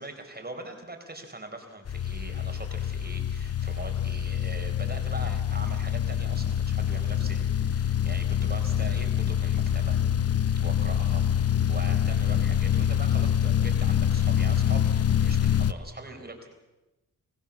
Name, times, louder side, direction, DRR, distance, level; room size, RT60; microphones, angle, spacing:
voice 1, 0.0-10.0 10.6-16.5, right 2 dB, 30° right, 4 dB, 4.4 m, -42 dB
sound 1, 1.9-15.7, left 9 dB, 50° left, 0.8 m, -25 dB
24.0 x 15.5 x 7.3 m, 1.0 s
cardioid pair, 65°, 32 cm